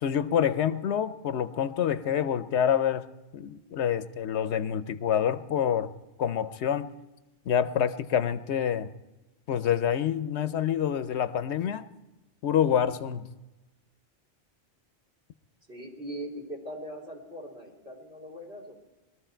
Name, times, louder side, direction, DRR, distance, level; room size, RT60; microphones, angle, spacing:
voice 1, 0.0-3.1 3.3-5.9 6.2-6.9 7.5-8.9 9.5-11.9 12.4-13.3, left 9 dB, 85° left, 14 dB, 1.0 m, -27 dB
voice 2, 15.7-18.7, right 1 dB, 70° right, 1 dB, 3.9 m, -40 dB
22.0 x 13.5 x 4.5 m, 1.0 s
omnidirectional pair, 1.1 m